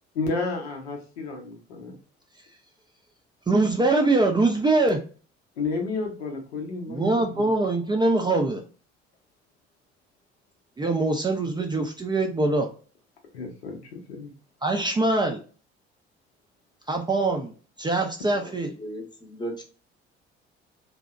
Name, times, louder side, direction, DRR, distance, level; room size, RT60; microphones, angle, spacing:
voice 1, 0.1-2.0 5.6-7.5 13.3-14.3, left 3 dB, 80° left, 1 dB, 0.7 m, -31 dB
voice 2, 3.5-5.0 6.9-8.6 10.8-12.7 14.6-15.4 16.9-17.5 17.8-18.7, right 2 dB, 15° right, 2 dB, 0.4 m, -23 dB
voice 3, 18.8-19.6, right 1 dB, 15° left, 3 dB, 0.7 m, -36 dB
2.7 x 2.1 x 2.3 m, 0.38 s
figure-of-eight pair, 50°, 32 cm